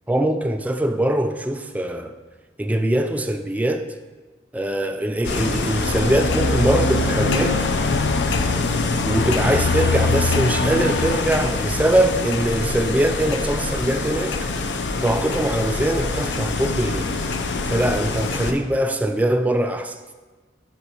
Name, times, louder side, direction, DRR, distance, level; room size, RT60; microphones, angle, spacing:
voice 1, 0.1-2.1 2.6-3.9 4.5-7.7 9.0-14.5 15.0-17.1 17.7-20.1, right 1 dB, 10° right, 0.3 m, -22 dB
sound 1, 5.2-18.5, left 3 dB, 75° left, 0.6 m, -23 dB
12.0 x 5.1 x 2.9 m
head